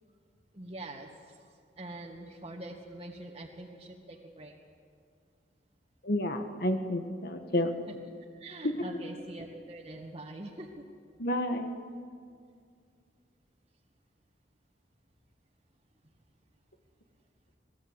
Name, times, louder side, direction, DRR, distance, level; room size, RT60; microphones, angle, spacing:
voice 1, 0.5-4.5 8.4-10.8, right 1 dB, 35° right, -3 dB, 1.8 m, -44 dB
voice 2, 6.0-7.7 8.6-8.7 11.2-11.7, left 1 dB, 60° left, 6 dB, 1.6 m, -30 dB
26.0 x 19.0 x 8.2 m, 2.2 s
head